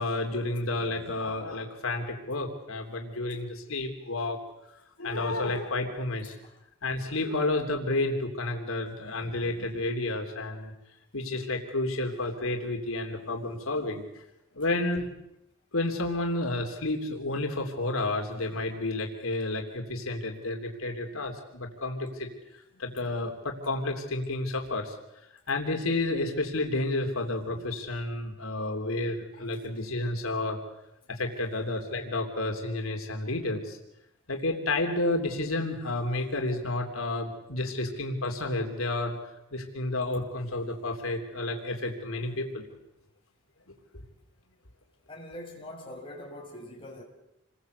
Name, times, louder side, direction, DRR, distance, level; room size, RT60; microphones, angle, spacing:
voice 1, 0.0-4.4 5.0-6.3 6.8-10.7 11.1-14.0 14.5-15.1 15.7-22.3 22.8-24.9 25.5-30.6 31.1-33.8 34.3-39.2 39.5-42.7 43.7-44.0, left 2 dB, 85° left, 3.2 m, -31 dB
voice 2, 45.1-47.0, left 1 dB, 25° left, 6.4 m, -43 dB
28.0 x 21.5 x 8.1 m
head